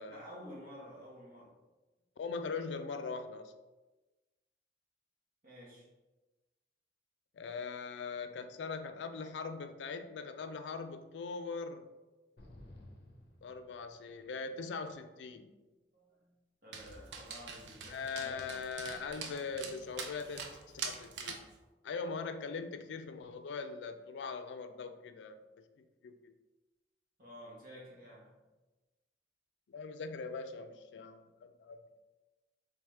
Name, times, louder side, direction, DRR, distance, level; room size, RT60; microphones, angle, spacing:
voice 1, 0.1-1.6 5.4-5.9 15.7-16.3 16.6-18.7 27.2-28.4, equal, 50° right, -4 dB, 1.2 m, -52 dB
voice 2, 2.2-3.5 7.3-11.9 13.4-15.5 17.9-20.4 20.7-21.4 21.8-26.3 29.7-31.8, left 4 dB, 90° left, 9 dB, 0.4 m, -41 dB
sound 1, 12.4-14.3, left 1 dB, 65° left, 0.7 m, -55 dB
Dog, 16.7-21.5, right 5 dB, 75° right, 0.5 m, -44 dB
3.5 x 3.4 x 3.2 m, 1.2 s
head